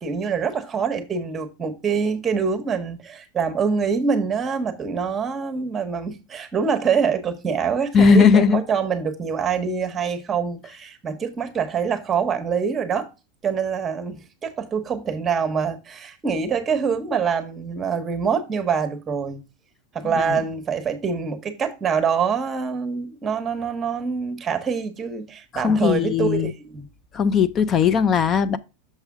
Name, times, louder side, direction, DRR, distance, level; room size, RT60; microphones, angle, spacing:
voice 1, 0.0-13.1 13.4-19.4 19.9-26.9, right 6 dB, 20° right, 1.0 m, -25 dB
voice 2, 7.9-8.6 20.2-20.4 25.5-26.5 27.1-28.6, left 6 dB, 25° left, 0.4 m, -18 dB
6.5 x 4.9 x 3.5 m
supercardioid pair, 140°, 0 cm